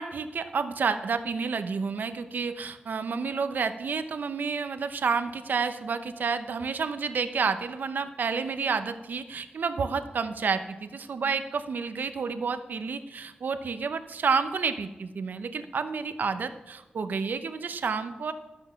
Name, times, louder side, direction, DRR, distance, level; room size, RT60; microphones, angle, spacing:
voice 1, 0.0-18.3, right 5 dB, 70° right, 9 dB, 0.8 m, -30 dB
12.5 x 8.0 x 5.8 m, 1.1 s
wide cardioid pair, 125°, 3 cm